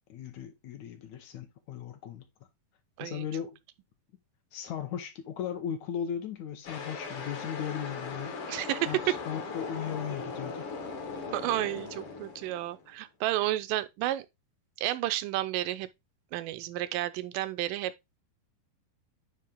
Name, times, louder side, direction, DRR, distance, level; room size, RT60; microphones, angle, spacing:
voice 1, 0.1-2.3 3.0-3.6 4.5-8.4 8.9-10.7, left 8 dB, 70° left, 2.1 m, -37 dB
sound 1, 6.6-12.9, left 4 dB, 50° left, 1.9 m, -39 dB
voice 2, 8.5-9.1 11.3-14.3 14.8-15.9 16.3-17.9, right 15 dB, 85° right, 2.2 m, -31 dB
9.7 x 3.2 x 3.6 m
omnidirectional pair, 3.8 m